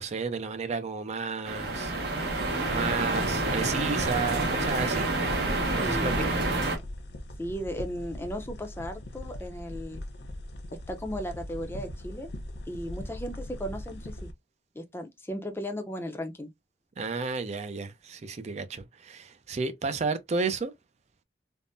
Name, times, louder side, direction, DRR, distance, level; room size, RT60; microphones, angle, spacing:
voice 1, 0.0-5.1 5.7-6.5 17.0-20.7, right 4 dB, 40° right, 0.4 m, -32 dB
sound 1, 1.5-6.8, right 2 dB, 65° right, 1.0 m, -28 dB
sound 2, 4.6-14.3, left 1 dB, 70° left, 0.6 m, -40 dB
voice 2, 5.8-6.3 7.4-10.0 10.9-12.3 12.7-14.3 14.7-16.5, equal, 15° left, 0.5 m, -36 dB
3.5 x 2.0 x 2.6 m
head